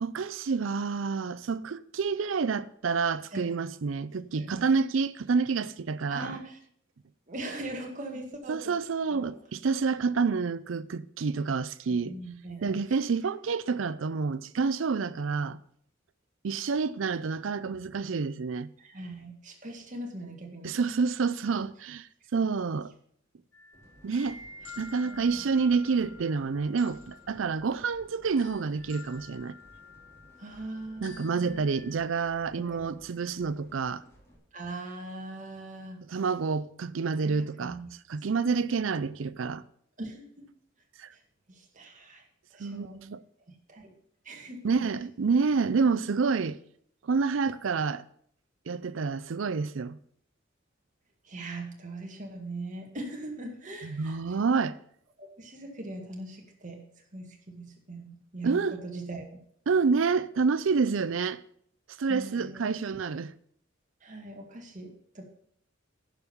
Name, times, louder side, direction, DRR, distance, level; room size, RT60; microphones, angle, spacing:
voice 1, 0.0-6.3 8.5-12.1 12.6-15.6 16.4-18.7 20.6-22.1 22.3-22.9 24.0-24.4 24.8-29.6 31.0-34.0 36.1-37.8 38.1-39.6 41.0-41.1 42.6-43.2 44.6-46.6 47.0-48.0 48.7-50.0 53.8-54.7 58.4-58.8 59.7-61.4 62.0-63.3, right 5 dB, 75° right, 0.5 m, -28 dB
voice 2, 6.1-6.6 7.3-8.8 9.1-9.3 11.9-13.0 18.8-20.8 25.0-25.5 30.4-31.7 32.7-32.9 34.5-36.0 37.2-37.9 40.0-40.5 41.1-41.2 41.5-42.2 42.5-43.0 43.5-43.9 44.2-44.6 51.2-54.4 55.2-56.8 57.1-59.4 62.1-62.7 64.0-65.2, right 2 dB, 40° right, 1.9 m, -41 dB
sound 1, 23.5-32.0, left 4 dB, 70° left, 1.3 m, -50 dB
sound 2, 23.7-34.4, right 1 dB, 15° left, 2.5 m, -58 dB
11.0 x 5.3 x 7.0 m
head